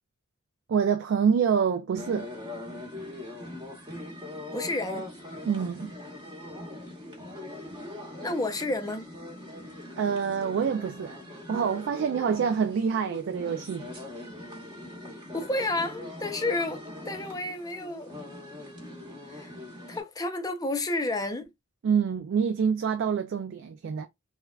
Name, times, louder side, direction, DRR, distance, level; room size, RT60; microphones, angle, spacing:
voice 1, 0.7-2.3 5.5-5.9 10.0-11.2 11.5-13.9 21.8-24.1, right 6 dB, 65° right, 0.3 m, -26 dB
sound 1, 1.9-20.0, left 1 dB, 20° right, 0.9 m, -41 dB
voice 2, 4.5-5.1 8.2-9.0 15.3-18.1 19.3-19.5 19.9-21.5, left 2 dB, 20° left, 0.5 m, -31 dB
3.4 x 2.2 x 2.3 m
head